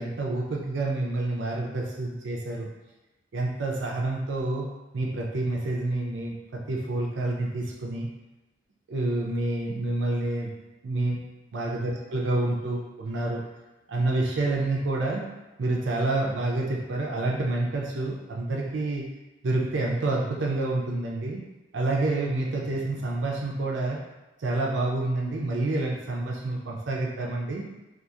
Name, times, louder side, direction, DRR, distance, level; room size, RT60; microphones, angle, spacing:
voice 1, 0.0-2.7 3.3-4.7 4.9-8.1 8.9-10.5 10.8-11.3 11.5-13.4 13.9-15.2 15.6-19.1 19.4-21.4 21.7-24.0 24.4-27.7, right 2 dB, 70° right, -2 dB, 0.4 m, -28 dB
2.8 x 2.4 x 2.3 m, 1.1 s
head